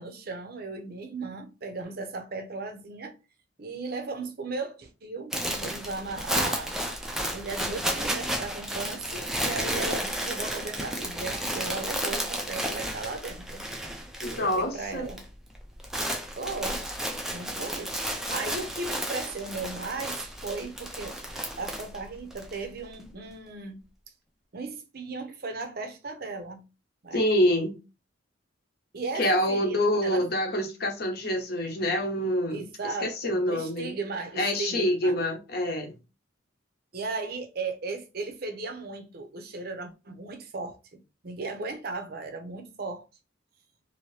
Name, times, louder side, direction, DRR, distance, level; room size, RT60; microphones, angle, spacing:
voice 1, 0.0-3.1 3.6-6.8 7.3-13.6 14.3-15.2 16.4-16.8 17.3-17.9 18.3-21.2 21.6-23.8 24.5-26.6 27.0-27.2 28.9-30.3 32.5-35.2 36.9-40.8 41.2-43.0, right 3 dB, 50° right, 0.6 m, -36 dB
sound 1, 5.3-14.6 14.9-15.2 15.5-22.5, equal, ahead, 0.4 m, -32 dB
voice 2, 14.2-15.1 27.1-27.8 29.1-33.9 34.3-35.9, left 1 dB, 50° left, 0.8 m, -26 dB
2.7 x 2.7 x 3.2 m
head